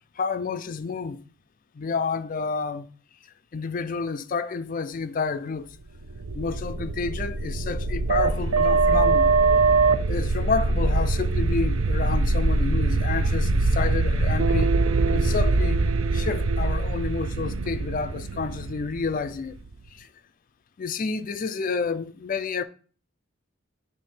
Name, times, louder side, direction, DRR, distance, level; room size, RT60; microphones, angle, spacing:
voice 1, 0.2-1.2 1.7-2.9 3.5-5.7 6.3-9.4 10.1-14.7 15.1-15.8 16.1-19.6 19.9-20.1 20.8-22.6, left 4 dB, 40° left, 0.4 m, -29 dB
sound 1, 6.0-19.7, right 3 dB, 80° right, 0.5 m, -23 dB
8.4 x 3.5 x 4.2 m
head